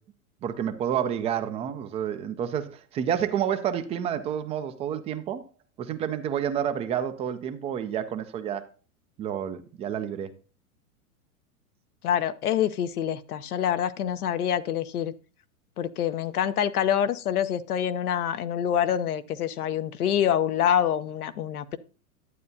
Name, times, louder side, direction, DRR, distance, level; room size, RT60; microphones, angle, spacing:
voice 1, 0.4-5.4 5.8-8.6 9.2-10.3, right 9 dB, 15° right, 0.3 m, -29 dB
voice 2, 12.0-15.1 15.8-21.8, left 9 dB, 80° left, 0.8 m, -26 dB
11.0 x 8.4 x 2.7 m
hypercardioid pair, 105°, 44 cm